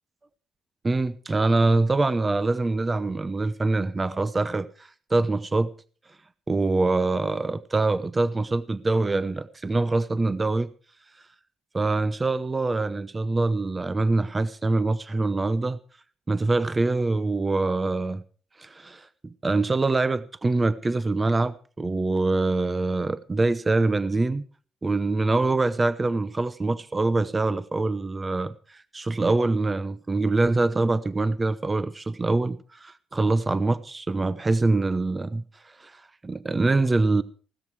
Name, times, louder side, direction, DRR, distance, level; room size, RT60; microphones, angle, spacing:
voice 1, 0.8-5.7 6.5-10.7 11.7-15.8 16.3-18.2 18.6-24.4 24.8-35.4 35.8-37.2, right 3 dB, 25° right, 0.8 m, -24 dB
16.0 x 13.0 x 4.8 m
cardioid pair, 90°, 0 cm